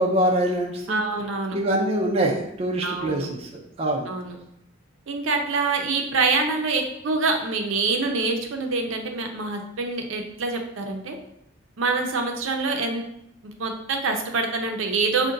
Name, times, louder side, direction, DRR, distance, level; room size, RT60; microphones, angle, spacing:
voice 1, 0.0-1.0 1.5-3.5 3.8-4.1, right 1 dB, 30° right, 0 dB, 0.4 m, -24 dB
voice 2, 0.9-1.6 2.8-3.3 4.1-4.4 5.1-11.2 11.8-13.0 13.4-15.3, right 3 dB, 75° right, 4 dB, 0.5 m, -25 dB
3.7 x 2.2 x 3.8 m, 0.80 s
head